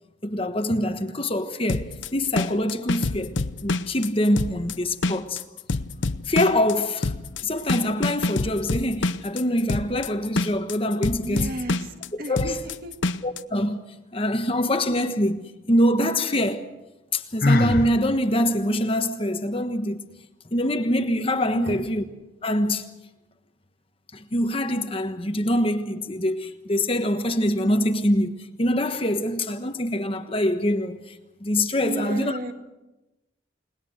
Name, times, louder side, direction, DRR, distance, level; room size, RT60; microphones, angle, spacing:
voice 1, 0.2-3.3 3.6-5.4 6.3-7.1 7.4-11.6 12.1-12.6 13.2-13.8 14.1-16.7 17.1-20.0 20.5-22.0 22.4-22.9 24.1-31.2 31.4-32.4, left 1 dB, 30° left, 1.3 m, -24 dB
sound 1, 1.7-13.4, left 2 dB, 75° left, 0.8 m, -27 dB
voice 2, 11.1-12.9 21.5-21.9 31.8-32.5, right 1 dB, 50° right, 2.1 m, -33 dB
Sigh, 17.4-17.9, left 2 dB, 50° left, 1.0 m, -20 dB
30.0 x 20.0 x 6.5 m
head